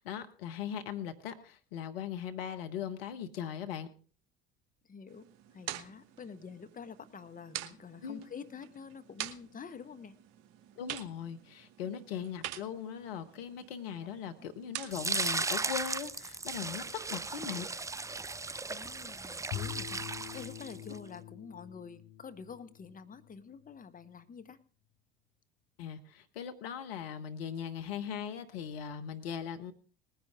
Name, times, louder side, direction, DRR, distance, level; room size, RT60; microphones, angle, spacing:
voice 1, 0.0-3.9 8.0-8.2 10.8-16.8 17.1-17.7 25.8-29.7, left 8 dB, 75° left, 8 dB, 1.3 m, -39 dB
voice 2, 4.8-5.2 5.5-10.2 14.4-14.5 18.7-24.6, left 6 dB, 25° left, 9 dB, 1.4 m, -48 dB
sound 1, 5.1-15.2, right 12 dB, 60° right, 1.2 m, -46 dB
sound 2, 14.9-21.0, right 3 dB, 10° right, 0.5 m, -36 dB
Bowed string instrument, 19.5-23.7, left 12 dB, 55° left, 0.8 m, -45 dB
19.5 x 10.5 x 3.6 m, 0.39 s
hypercardioid pair, 70°, 30 cm